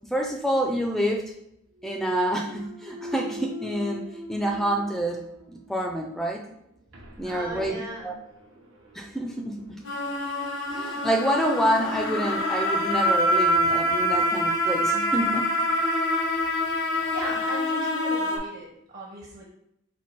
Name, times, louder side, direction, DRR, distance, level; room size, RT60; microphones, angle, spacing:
voice 1, 0.0-1.3 1.8-5.2 5.5-6.4 7.2-8.1 8.9-9.8 10.7-15.5, right 1 dB, ahead, 2 dB, 0.3 m, -27 dB
Thump thud, 1.8-5.8 6.3-10.9, left 1 dB, 85° right, 0.9 m, -43 dB
voice 2, 7.2-8.2 16.5-19.4, right 1 dB, 45° right, -3 dB, 0.7 m, -38 dB
sound 1, 9.8-18.4, equal, 85° left, 1.0 m, -25 dB
4.3 x 2.3 x 4.5 m, 0.78 s
head